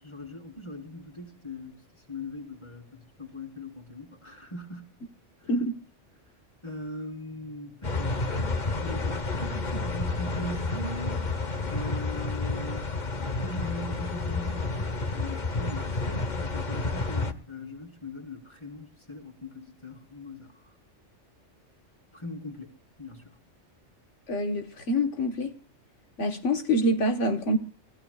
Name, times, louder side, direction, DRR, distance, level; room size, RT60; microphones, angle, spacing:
voice 1, 0.0-1.8 2.1-4.9 5.5-5.7 6.6-11.4 11.7-12.9 13.2-20.7 22.1-22.7 23.0-23.4, left 1 dB, 25° left, 4.2 m, -40 dB
Steam Train Locomotive, 7.8-17.3, left 3 dB, 40° left, 1.3 m, -30 dB
voice 2, 24.3-25.5 26.2-27.6, equal, 75° left, 1.7 m, -26 dB
29.5 x 16.0 x 2.4 m
omnidirectional pair, 1.2 m